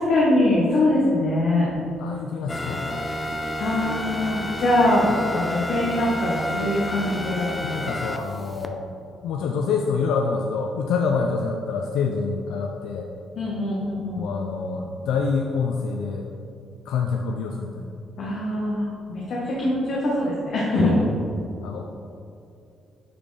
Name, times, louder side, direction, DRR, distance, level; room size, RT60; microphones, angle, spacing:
voice 1, 0.0-1.7 3.6-7.5 13.4-14.2 18.2-20.9, left 1 dB, 65° left, -5 dB, 1.1 m, -23 dB
voice 2, 2.0-3.1 7.6-8.9 9.2-13.1 14.2-16.3 16.9-17.8 21.6-21.8, left 5 dB, 90° left, 2 dB, 0.4 m, -26 dB
sound 1, 2.5-8.7, left 1 dB, 25° left, 0.5 m, -30 dB
8.8 x 4.2 x 3.3 m, 2.7 s
cardioid pair, 90°, 0 cm